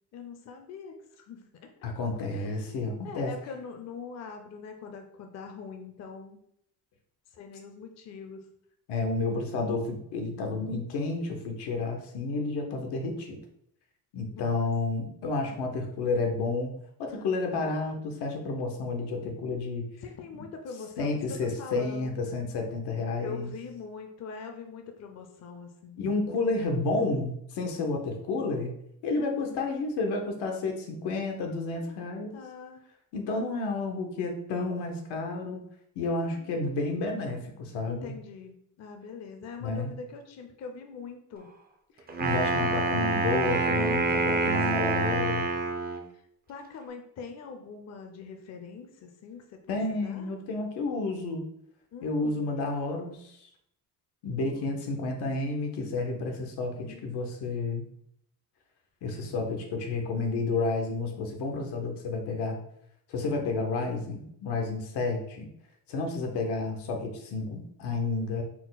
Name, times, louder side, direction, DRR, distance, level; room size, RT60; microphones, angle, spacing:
voice 1, 0.1-1.7 2.3-2.6 3.0-6.4 7.3-8.5 14.2-14.7 17.1-17.8 20.0-21.1 21.6-22.2 23.2-26.0 29.1-29.7 31.8-32.1 32.3-32.8 36.2-36.4 37.9-41.5 44.6-44.7 46.1-46.2 46.5-50.3 51.9-52.4 54.4-54.7 56.7-57.0, left 5 dB, 45° left, 5 dB, 0.5 m, -43 dB
voice 2, 1.8-3.3 8.9-13.4 14.1-19.9 20.3-20.4 21.0-23.5 26.0-28.7 29.0-32.4 33.1-35.7 35.9-38.1 39.6-39.9 42.2-45.5 49.7-51.5 52.0-53.5 54.2-57.9 59.0-62.6 63.1-65.5 65.9-68.4, left 3 dB, 90° left, 3 dB, 1.0 m, -31 dB
Wind instrument woodwind instrument, 42.1-46.1, right 3 dB, 25° right, 0.4 m, -27 dB
4.5 x 2.1 x 3.9 m, 0.73 s
cardioid pair, 145°, 39 cm